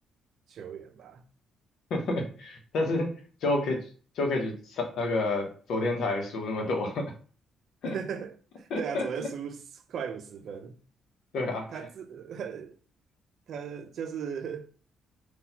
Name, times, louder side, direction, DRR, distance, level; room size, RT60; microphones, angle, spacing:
voice 1, 0.5-1.2 7.8-9.6 9.9-10.8 11.7-12.7 13.5-14.7, right 7 dB, 65° right, 0.5 m, -37 dB
voice 2, 1.9-3.1 3.4-3.9 4.2-7.1 7.8-7.9 8.7-9.0 11.3-11.7, left 2 dB, 75° left, 0.8 m, -29 dB
3.9 x 2.3 x 2.8 m
cardioid pair, 90°, 0 cm